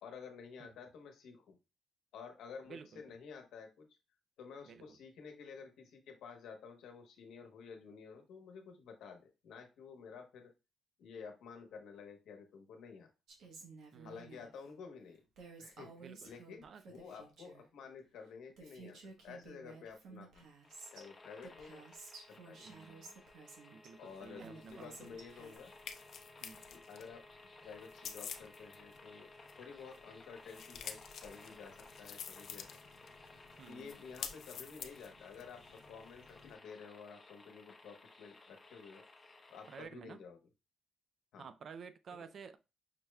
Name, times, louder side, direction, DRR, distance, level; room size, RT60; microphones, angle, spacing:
voice 1, 0.0-1.6 2.1-3.9 4.4-10.5 11.0-13.1 14.0-15.2 15.6-20.5 20.9-21.8 22.1-22.7 24.0-25.7 26.7-27.2 27.6-29.3 29.6-32.7 33.7-39.0 39.5-40.4 41.3-41.5 42.2-42.3, left 5 dB, 90° left, 1.0 m, -52 dB
voice 2, 2.7-3.1 4.7-5.0 13.9-14.3 16.0-16.3 16.6-16.8 22.6-23.2 23.7-25.2 26.4-26.6 33.6-33.9 39.7-40.2 41.4-42.6, right 6 dB, 55° right, 0.4 m, -52 dB
Female speech woman speaking, 13.3-14.5 15.4-17.7 18.3-18.4 18.6-21.1 21.4-23.9 24.4-25.6, right 4 dB, 85° right, 1.1 m, -54 dB
sound 1, 20.6-39.8, left 2 dB, 30° left, 0.8 m, -58 dB
sound 2, 24.1-36.6, left 7 dB, 65° left, 0.5 m, -51 dB
5.6 x 3.2 x 2.2 m
cardioid pair, 120°, 0 cm